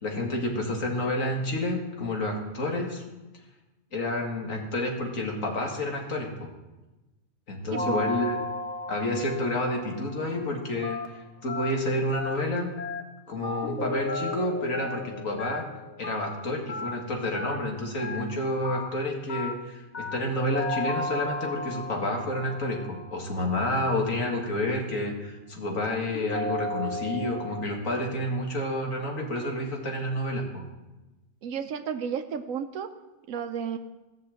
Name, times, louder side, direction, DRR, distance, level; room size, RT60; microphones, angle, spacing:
voice 1, 0.0-3.0 3.9-6.5 7.5-8.4 8.9-12.7 13.3-15.7 16.0-30.6, left 1 dB, 75° left, 1 dB, 2.4 m, -29 dB
sound 1, 7.7-10.7 13.6-16.7 20.4-23.6 26.1-27.6, left 1 dB, 5° left, 2.7 m, -34 dB
voice 2, 7.7-8.0 31.4-32.9 33.3-33.8, right 7 dB, 90° right, 8 dB, 1.2 m, -32 dB
Telephone, 10.8-11.1 11.5-11.7 12.1-12.4 12.8-13.0 13.4-13.7 14.1-14.3 14.7-15.0 15.4-15.6 16.0-16.3 16.7-16.9 17.3-17.6 18.0-18.2 18.6-18.9 19.3-19.5 19.9-20.2 20.6-20.8, left 3 dB, 35° left, 1.1 m, -35 dB
15.5 x 6.4 x 7.6 m, 1.1 s
omnidirectional pair, 1.4 m